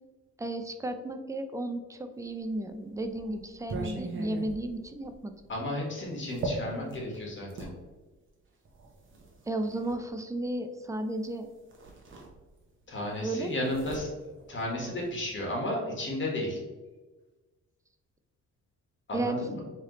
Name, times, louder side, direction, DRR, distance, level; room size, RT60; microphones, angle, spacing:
voice 1, 0.4-5.3 9.5-11.5 13.2-13.5 19.1-19.4, right 1 dB, 10° right, 8 dB, 0.3 m, -33 dB
sound 1, 2.4-7.8 8.7-10.0 11.2-11.4 11.7-12.8 13.1-15.3, right 2 dB, 40° right, 0.9 m, -40 dB
voice 2, 5.5-7.7 12.9-14.1 14.5-16.6 19.1-19.6, left 1 dB, 40° left, -2 dB, 1.4 m, -33 dB
3.2 x 3.0 x 3.8 m, 1.2 s
cardioid pair, 90°, 30 cm